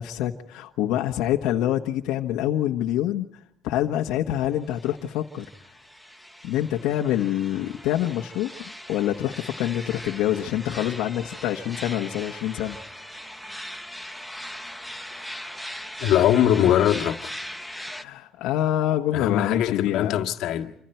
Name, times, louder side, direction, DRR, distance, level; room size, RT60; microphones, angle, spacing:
voice 1, 0.0-3.3 3.6-5.5 6.4-12.8 17.9-20.2, left 12 dB, 85° left, 1.4 m, -26 dB
sound 1, 4.7-18.0, equal, ahead, 0.8 m, -39 dB
voice 2, 16.0-17.3 19.1-20.7, left 11 dB, 65° left, 1.7 m, -21 dB
28.5 x 26.5 x 4.5 m
cardioid pair, 170°, 0 cm